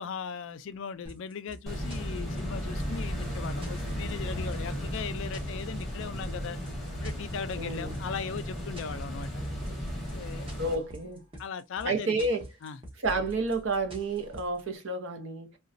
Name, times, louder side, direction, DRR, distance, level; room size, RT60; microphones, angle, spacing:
voice 1, 0.0-6.6 7.0-9.3 10.1-10.5 11.4-12.3 12.6-12.8, left 6 dB, 60° left, 0.3 m, -38 dB
sound 1, 1.0-14.6, equal, 25° right, 1.0 m, -46 dB
sound 2, 1.7-10.7, equal, ahead, 1.0 m, -35 dB
voice 2, 7.6-7.9 10.6-11.2 11.8-12.4 13.0-15.5, right 3 dB, 65° right, 0.7 m, -30 dB
3.9 x 2.2 x 2.4 m
head